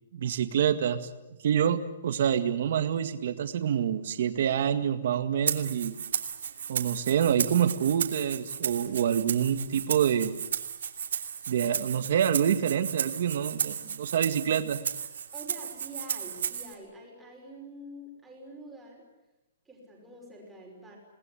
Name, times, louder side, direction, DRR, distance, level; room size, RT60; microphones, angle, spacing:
voice 1, 0.1-1.1 1.4-5.9 6.7-10.3 11.5-14.8, right 9 dB, 45° right, 9 dB, 1.9 m, -27 dB
Rattle (instrument), 5.5-16.7, right 8 dB, 65° right, 2.8 m, -34 dB
voice 2, 15.3-19.1 19.7-21.0, right 1 dB, 5° right, -2 dB, 5.6 m, -46 dB
28.5 x 19.5 x 10.0 m, 0.96 s
hypercardioid pair, 180°, 0 cm